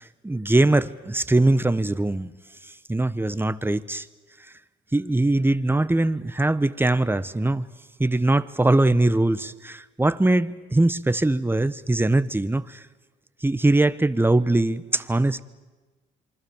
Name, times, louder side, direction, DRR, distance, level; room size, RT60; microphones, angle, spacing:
voice 1, 0.0-2.3 2.9-4.1 4.9-7.7 8.0-12.8 13.4-15.4, right 2 dB, 10° right, 1.1 m, -21 dB
27.5 x 24.5 x 7.2 m
cardioid pair, 90°, 20 cm